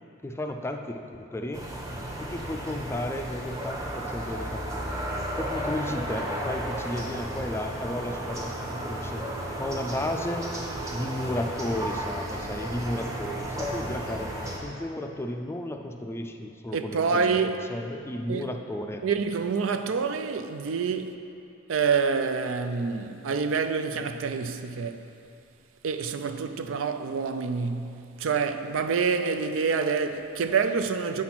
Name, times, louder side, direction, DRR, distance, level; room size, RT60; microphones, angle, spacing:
voice 1, 0.2-1.0 1.3-1.7 2.2-5.0 5.4-8.5 8.8-9.2 9.6-10.5 10.9-14.3 14.6-19.0, left 1 dB, 15° left, 0.4 m, -33 dB
sound 1, 1.5-14.6, right 1 dB, 15° right, 0.9 m, -33 dB
voice 2, 16.7-17.6 18.3-18.5 19.0-21.2 21.7-25.1 25.8-31.2, right 5 dB, 85° right, 0.4 m, -27 dB
8.6 x 4.2 x 5.9 m
head